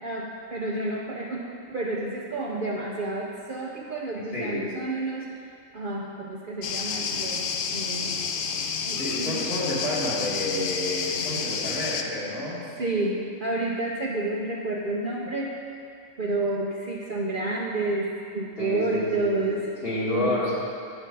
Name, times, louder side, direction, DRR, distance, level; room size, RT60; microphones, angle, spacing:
voice 1, 0.0-5.3 5.7-8.2 8.9-9.4 12.8-15.6 16.2-19.7 20.0-20.4, right 2 dB, 50° right, -3 dB, 0.7 m, -30 dB
voice 2, 4.3-4.6 9.0-12.6 12.9-13.1 18.6-20.5, left 1 dB, 45° left, -8 dB, 2.3 m, -30 dB
sound 1, 6.6-12.0, left 6 dB, 60° left, 0.5 m, -30 dB
8.9 x 6.1 x 5.2 m, 2.5 s
omnidirectional pair, 1.4 m